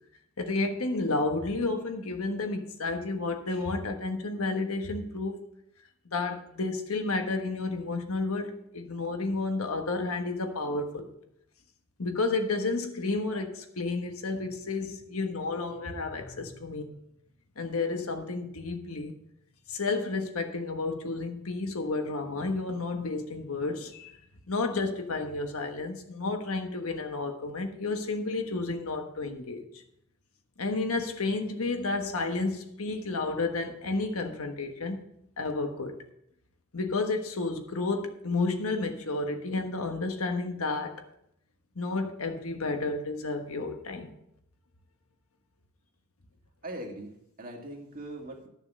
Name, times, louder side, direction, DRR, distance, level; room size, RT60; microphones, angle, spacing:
voice 1, 0.4-5.4 6.1-11.1 12.0-16.9 17.6-19.1 19.7-24.1 24.5-29.8 30.6-35.0 35.4-36.0 36.7-41.0 41.7-44.1, left 3 dB, 75° left, 5 dB, 1.3 m, -31 dB
voice 2, 46.6-48.5, right 1 dB, 40° right, 1 dB, 1.9 m, -41 dB
11.5 x 6.8 x 5.4 m, 0.75 s
head